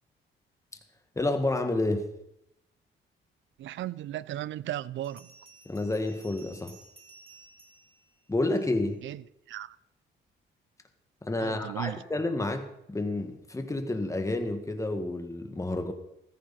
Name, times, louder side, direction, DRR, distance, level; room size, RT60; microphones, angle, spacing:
voice 1, 1.2-2.1 5.7-6.8 8.3-9.0 11.2-15.9, left 2 dB, 15° left, 1.8 m, -30 dB
voice 2, 3.6-5.3 9.0-9.8 11.4-12.0, right 13 dB, 70° right, 0.5 m, -36 dB
Bell, 5.0-8.9, right 3 dB, 30° right, 3.3 m, -55 dB
15.0 x 14.0 x 4.3 m
cardioid pair, 90°, 20 cm